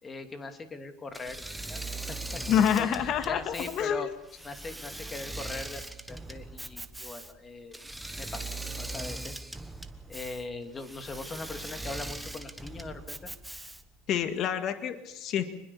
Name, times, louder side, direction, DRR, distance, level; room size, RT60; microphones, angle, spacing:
voice 1, 0.0-2.4 2.7-2.9 3.3-4.1 4.4-5.8 6.1-7.8 8.2-8.5 8.8-9.4 10.1-13.3, left 3 dB, 20° left, 7 dB, 2.6 m, -40 dB
Engine / Mechanisms, 1.1-14.0, right 2 dB, 5° right, 1.3 m, -40 dB
voice 2, 2.5-4.1 14.1-15.5, left 9 dB, 45° left, 8 dB, 1.8 m, -27 dB
27.0 x 21.0 x 7.1 m, 0.81 s
supercardioid pair, 140°, 0 cm